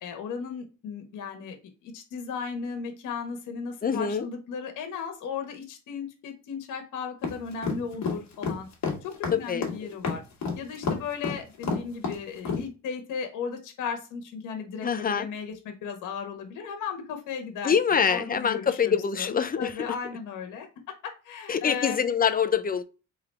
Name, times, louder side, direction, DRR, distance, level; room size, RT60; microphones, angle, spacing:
voice 1, 0.0-1.6 1.8-8.7 9.0-10.2 10.6-22.0, left 6 dB, 90° left, 1.3 m, -36 dB
voice 2, 3.8-4.3 9.3-9.9 14.8-15.3 17.6-19.7 21.5-22.8, left 7 dB, 30° left, 0.6 m, -25 dB
sound 1, 7.2-12.6, left 4 dB, 65° left, 1.6 m, -29 dB
4.0 x 3.5 x 3.4 m
cardioid pair, 90°, 30 cm